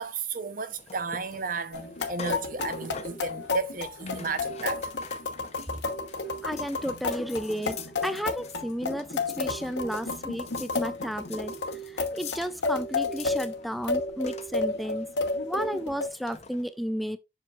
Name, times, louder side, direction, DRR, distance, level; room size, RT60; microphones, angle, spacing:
voice 1, 0.0-4.9, right 4 dB, 50° right, 0.8 m, -33 dB
sound 1, 0.7-16.6, left 5 dB, 40° left, 0.7 m, -47 dB
sound 2, 1.7-16.1, left 3 dB, 80° left, 1.2 m, -32 dB
voice 2, 6.4-11.5 11.9-15.1 15.5-17.2, equal, ahead, 0.3 m, -33 dB
7.5 x 6.1 x 2.4 m
head